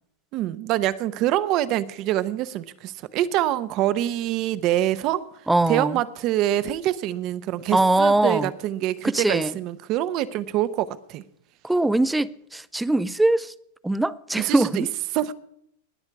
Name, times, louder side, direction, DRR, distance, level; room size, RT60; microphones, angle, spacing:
voice 1, 0.3-11.2 14.3-14.9 15.1-15.3, right 13 dB, 35° right, 0.7 m, -25 dB
voice 2, 5.5-5.9 7.7-8.5 9.0-9.5 11.6-13.5 13.8-14.9, right 2 dB, 5° right, 0.4 m, -21 dB
20.0 x 8.0 x 4.7 m
supercardioid pair, 155°, 0 cm